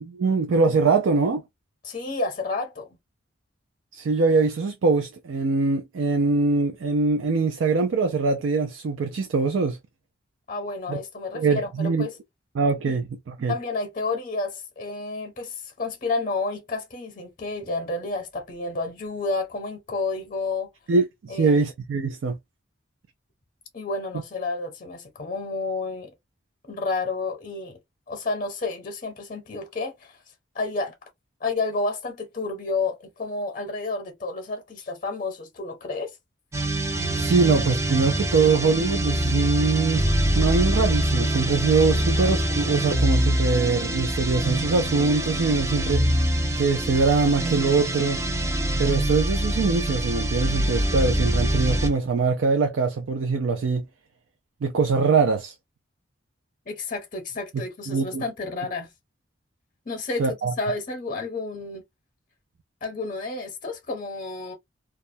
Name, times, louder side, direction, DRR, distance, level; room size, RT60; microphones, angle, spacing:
voice 1, 0.0-1.4 3.9-9.8 10.9-11.0 11.3-12.1 12.5-13.5 20.9-22.4 36.7-36.8 37.1-46.0 46.6-48.2 48.8-53.8 54.6-55.5 57.9-58.2 60.2-60.5, right 4 dB, 85° right, 0.4 m, -23 dB
voice 2, 1.8-3.0 10.5-12.1 12.9-13.0 13.5-20.7 21.3-21.6 23.7-26.1 26.6-27.8 28.1-30.2 30.5-30.9 31.4-36.2 56.7-58.9 59.9-61.8 62.8-64.5, left 3 dB, 45° left, 0.6 m, -30 dB
sound 1, 36.5-52.0, right 1 dB, 15° right, 0.3 m, -24 dB
2.3 x 2.1 x 2.6 m
head